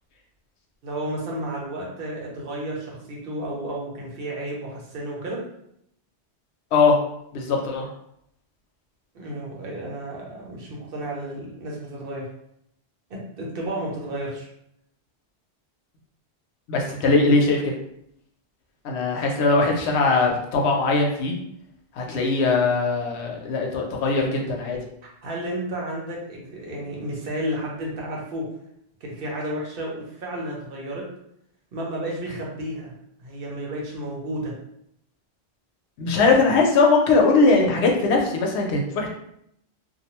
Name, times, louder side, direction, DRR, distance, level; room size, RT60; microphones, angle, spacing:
voice 1, 0.8-5.4 9.1-12.3 13.1-14.5 16.9-17.0 25.2-28.5 29.0-31.1 31.7-32.9 33.2-34.5, right 1 dB, 60° right, -3 dB, 0.8 m, -32 dB
voice 2, 7.3-7.9 16.7-17.7 18.8-21.3 21.9-24.8 36.0-39.1, left 3 dB, 80° left, 1 dB, 0.8 m, -20 dB
2.5 x 2.0 x 2.9 m, 0.73 s
omnidirectional pair, 1.1 m